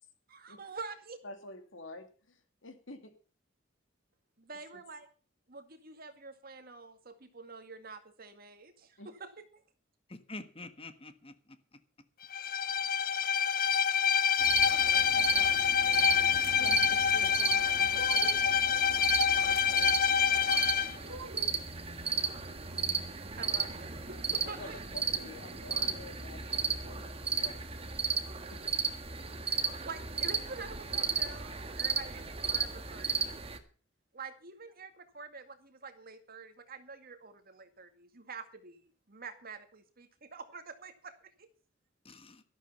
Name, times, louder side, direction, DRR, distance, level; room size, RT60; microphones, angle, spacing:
voice 1, 0.3-1.2 4.4-5.1 5.5-9.6 23.0-24.8 29.4-33.5 34.1-41.5, right 4 dB, 50° right, 7 dB, 2.1 m, -47 dB
voice 2, 1.2-3.1 4.7-4.8 9.0-9.1 14.6-20.3 24.4-27.7 28.5-28.6, left 2 dB, 80° left, 7 dB, 2.5 m, -49 dB
voice 3, 10.1-11.8 42.0-42.4, left 2 dB, 30° left, 10 dB, 1.4 m, -47 dB
Bowed string instrument, 12.3-21.0, left 7 dB, 50° left, 0.6 m, -27 dB
sound 1, 14.4-33.6, right 5 dB, 30° right, 1.7 m, -35 dB
sound 2, 16.4-16.6 17.2-17.3 17.9-18.5 19.6-19.7 20.3-20.4 21.0-21.6, right 3 dB, 80° right, 1.4 m, -46 dB
13.0 x 12.0 x 5.6 m, 0.37 s
head